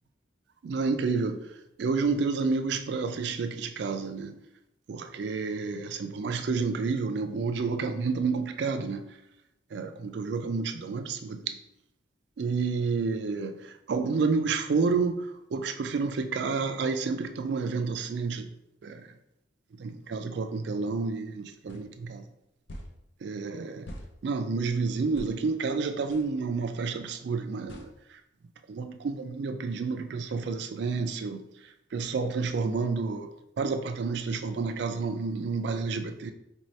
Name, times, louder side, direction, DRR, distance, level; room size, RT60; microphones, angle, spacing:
voice 1, 0.7-1.4 1.8-4.4 4.9-9.0 9.7-11.6 12.4-13.5 13.9-15.2 15.5-18.5 18.8-19.0 19.8-22.2 23.2-23.9 24.2-27.9 28.7-31.4 31.9-33.3 33.6-36.3, right 4 dB, 60° right, 7 dB, 0.3 m, -29 dB
sound 1, 21.7-21.8 22.7-22.9 23.9-24.1 25.1-25.3 26.1-26.3 27.7-27.9, equal, 65° left, 0.5 m, -42 dB
4.2 x 2.7 x 3.1 m, 0.85 s
head